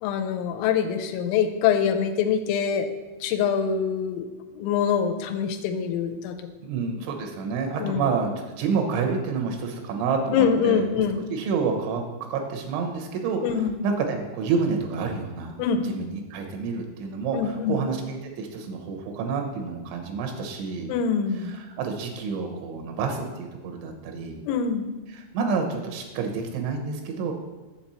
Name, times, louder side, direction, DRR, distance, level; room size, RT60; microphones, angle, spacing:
voice 1, 0.0-2.9 3.2-4.3 4.6-6.3 7.8-8.0 10.3-11.2 13.4-13.7 15.6-15.8 17.3-17.8 20.9-21.5 24.5-24.9, left 7 dB, 90° left, 8 dB, 3.0 m, -24 dB
voice 2, 6.6-11.0 11.3-15.6 15.8-20.9 21.4-24.4 25.1-27.3, right 5 dB, 90° right, 4 dB, 3.4 m, -29 dB
7.7 x 7.2 x 4.3 m, 1.2 s
omnidirectional pair, 5.2 m